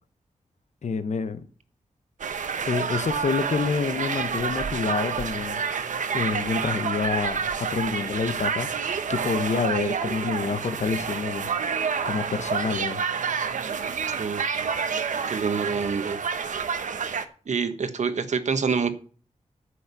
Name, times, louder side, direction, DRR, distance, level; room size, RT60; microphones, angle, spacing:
voice 1, 0.8-1.4 2.7-5.6 6.1-8.7 9.1-11.5 12.0-13.0, left 5 dB, 65° left, 1.1 m, -27 dB
sound 1, 2.2-17.2, right 6 dB, 80° right, 1.0 m, -29 dB
voice 2, 15.3-16.2 17.5-18.9, right 5 dB, 65° right, 1.3 m, -26 dB
9.6 x 6.3 x 8.2 m
wide cardioid pair, 100°, 13 cm